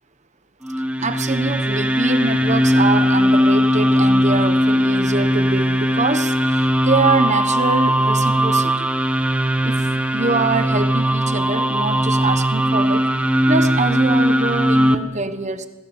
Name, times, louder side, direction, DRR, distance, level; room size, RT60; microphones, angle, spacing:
sound 1, 0.6-14.9, equal, 5° right, 1.1 m, -18 dB
voice 1, 1.0-8.9 9.6-13.0 13.5-15.7, right 3 dB, 30° right, 10 dB, 1.2 m, -24 dB
27.0 x 19.0 x 7.4 m, 1.1 s
head